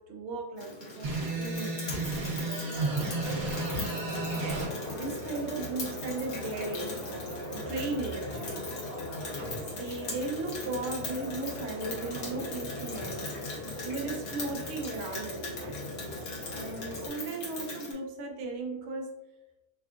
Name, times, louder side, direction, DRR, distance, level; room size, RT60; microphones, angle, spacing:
voice 1, 0.0-3.6 3.9-4.1 4.4-7.1 7.5-9.0 9.2-13.3 13.6-16.2 16.5-19.2, right 3 dB, 60° right, 1 dB, 0.8 m, -37 dB
Rain, 0.6-17.9, left 3 dB, 80° left, 1.3 m, -41 dB
sound 1, 1.0-4.7, right 3 dB, 85° right, 1.2 m, -32 dB
sound 2, 2.7-17.1, left 1 dB, 45° left, 1.3 m, -40 dB
3.5 x 2.3 x 2.4 m, 0.99 s
omnidirectional pair, 1.5 m